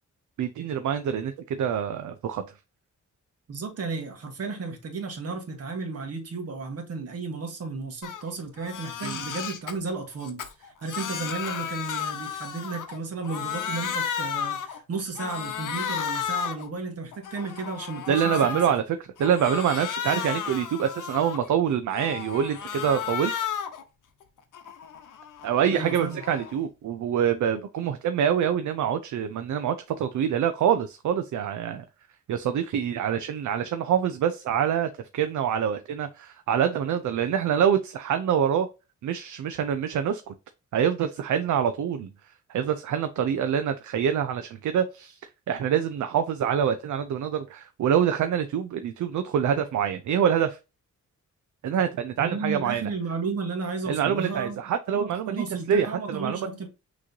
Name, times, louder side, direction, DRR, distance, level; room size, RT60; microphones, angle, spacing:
voice 1, 0.4-2.4 9.0-9.2 18.1-23.3 25.4-31.8 32.3-38.7 39.0-40.3 40.7-42.1 42.5-45.2 45.5-50.6 51.6-52.8 53.9-56.5, right 8 dB, 70° right, 0.5 m, -25 dB
voice 2, 3.5-18.4 20.1-20.2 25.7-26.2 52.2-54.6 54.9-56.7, right 4 dB, 50° right, 1.4 m, -33 dB
Crying sobbing, 8.0-8.2 8.6-9.7 10.2-13.0 13.2-14.8 15.2-16.7 17.1-18.8 19.2-21.5 21.9-23.8 24.2-26.6, left 8 dB, 80° left, 0.9 m, -33 dB
6.0 x 3.1 x 2.7 m
wide cardioid pair, 145°, 31 cm